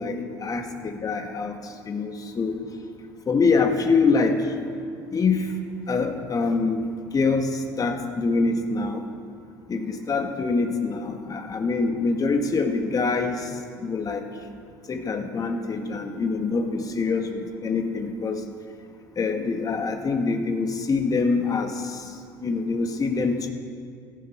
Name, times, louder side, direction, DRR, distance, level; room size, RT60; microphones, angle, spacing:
voice 1, 0.0-1.6 1.8-2.6 3.3-4.5 5.1-5.5 5.9-9.0 9.7-13.5 13.8-14.3 14.9-18.4 19.2-22.0 22.4-23.5, left 4 dB, 35° left, 5 dB, 2.2 m, -25 dB
16.5 x 14.5 x 4.8 m, 2.2 s
hypercardioid pair, 65°, 11 cm